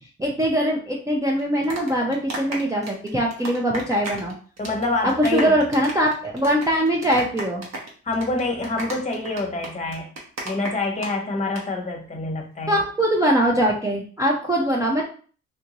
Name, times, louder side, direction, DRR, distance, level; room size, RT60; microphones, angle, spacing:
voice 1, 0.2-4.3 5.0-7.6 12.7-15.0, equal, 10° right, -2 dB, 0.6 m, -22 dB
sound 1, 1.4-4.3 4.6-4.8 5.1-11.1 11.4-11.6, right 2 dB, 60° right, 1.1 m, -33 dB
voice 2, 4.6-5.5 8.1-10.1 10.4-12.8, left 2 dB, 25° left, 1 dB, 0.9 m, -26 dB
3.5 x 2.6 x 2.9 m, 0.42 s
cardioid pair, 90°, 30 cm